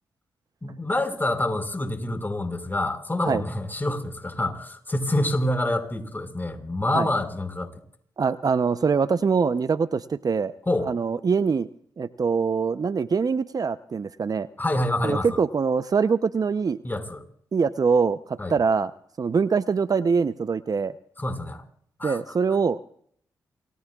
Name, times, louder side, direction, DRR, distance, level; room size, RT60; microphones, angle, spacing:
voice 1, 0.6-7.7 10.7-10.9 14.6-15.4 16.8-17.2 18.4-18.5 21.2-21.6 22.0-22.2, left 1 dB, 25° left, 5 dB, 5.5 m, -27 dB
voice 2, 8.2-10.5 10.8-11.7 12.0-14.5 15.0-16.8 17.5-18.9 19.2-20.9 22.0-22.8, right 5 dB, 50° right, 13 dB, 0.7 m, -23 dB
28.0 x 20.0 x 2.4 m, 0.63 s
hypercardioid pair, 40°, 8 cm